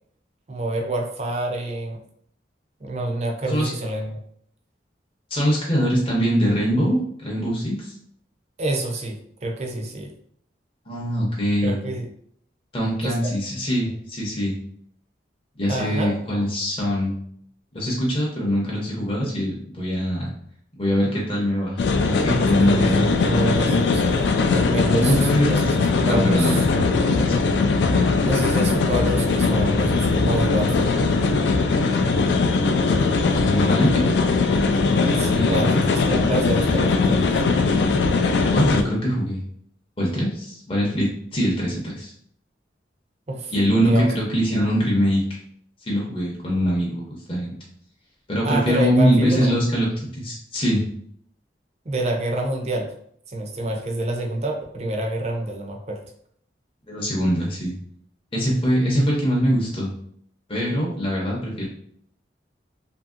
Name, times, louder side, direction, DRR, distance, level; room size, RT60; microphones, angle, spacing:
voice 1, 0.5-2.0 2.8-4.2 8.6-10.1 11.6-12.1 13.0-13.1 15.7-16.2 22.6-24.0 24.5-26.6 27.9-30.9 35.2-37.4 43.3-43.5 43.8-44.1 48.4-49.5 51.9-52.9 53.3-56.0, right 1 dB, 35° right, 3 dB, 0.4 m, -27 dB
voice 2, 5.3-7.9 10.9-11.8 12.7-14.6 15.6-17.2 17.7-20.3 20.8-23.0 24.9-25.5 26.1-26.8 33.3-34.0 35.3-35.9 38.2-39.4 40.0-42.1 43.5-45.4 45.8-47.0 47.3-47.5 48.3-49.9 50.2-50.8 56.8-57.7 58.3-59.9 60.5-61.7, equal, 30° left, -4 dB, 0.6 m, -23 dB
sound 1, 21.8-38.8, left 4 dB, 75° left, 0.3 m, -20 dB
2.8 x 2.6 x 2.4 m, 0.65 s
head